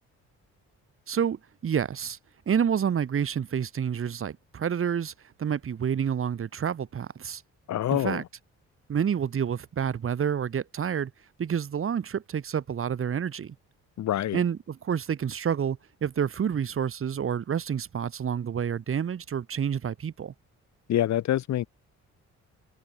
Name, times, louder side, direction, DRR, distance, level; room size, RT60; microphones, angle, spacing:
voice 1, 1.1-2.2 2.5-5.1 5.4-7.4 7.9-8.2 8.9-11.1 11.4-13.6 14.3-20.3, right 8 dB, 45° right, 1.7 m, -28 dB
voice 2, 7.7-8.2 14.0-14.4 20.9-21.7, left 12 dB, 65° left, 1.2 m, -26 dB
cardioid pair, 90°, 30 cm